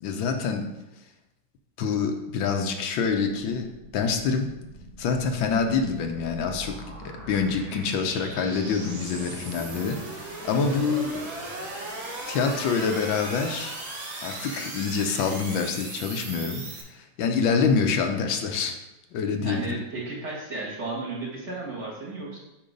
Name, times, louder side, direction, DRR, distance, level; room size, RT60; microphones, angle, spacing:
voice 1, 0.0-0.7 1.8-4.5 5.0-11.3 12.3-13.7 14.2-18.8 19.1-19.8, left 5 dB, 80° left, 5 dB, 1.5 m, -26 dB
sound 1, 3.5-16.8, right 2 dB, 85° right, 2.2 m, -39 dB
voice 2, 10.5-10.8 19.4-22.4, right 3 dB, 35° right, -6 dB, 2.1 m, -34 dB
8.6 x 3.1 x 5.1 m, 0.95 s
omnidirectional pair, 2.1 m